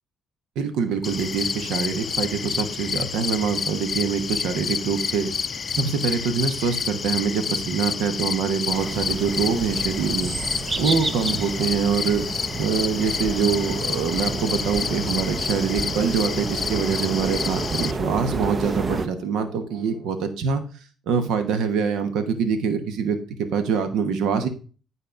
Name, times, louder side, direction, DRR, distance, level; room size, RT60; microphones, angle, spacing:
voice 1, 0.5-5.3 5.8-10.3 10.8-12.3 12.6-20.6 21.1-23.2 23.5-24.5, right 6 dB, 90° right, 9 dB, 1.1 m, -24 dB
sound 1, 1.0-17.9, left 6 dB, 45° left, 0.4 m, -29 dB
sound 2, 8.7-19.1, right 3 dB, 35° right, 0.7 m, -31 dB
sound 3, 10.8-20.0, right 1 dB, 75° right, 1.9 m, -41 dB
9.3 x 4.2 x 5.1 m, 0.37 s
cardioid pair, 90°, 0 cm